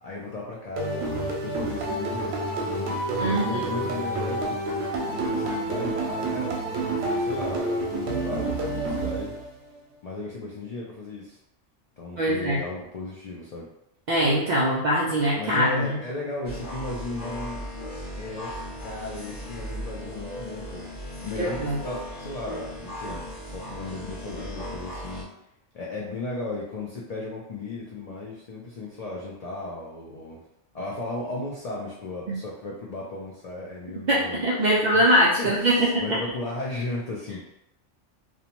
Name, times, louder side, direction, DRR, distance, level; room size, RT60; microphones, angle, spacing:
voice 1, 0.0-2.3 2.6-4.6 5.1-9.3 10.0-11.4 12.0-13.7 15.4-17.6 18.2-18.5 18.8-20.8 21.2-25.3 25.7-30.4 30.7-37.5, left 2 dB, 70° left, -4 dB, 0.3 m, -35 dB
sound 1, 0.8-9.7, right 2 dB, 90° right, 0.9 m, -28 dB
voice 2, 3.2-3.6 12.2-12.6 14.1-16.0 21.4-21.8 32.3-32.4 34.1-36.0, equal, 65° right, -5 dB, 0.4 m, -22 dB
sound 2, 16.4-25.2, equal, 90° left, 1.1 m, -37 dB
2.6 x 2.1 x 2.8 m, 0.82 s
omnidirectional pair, 1.2 m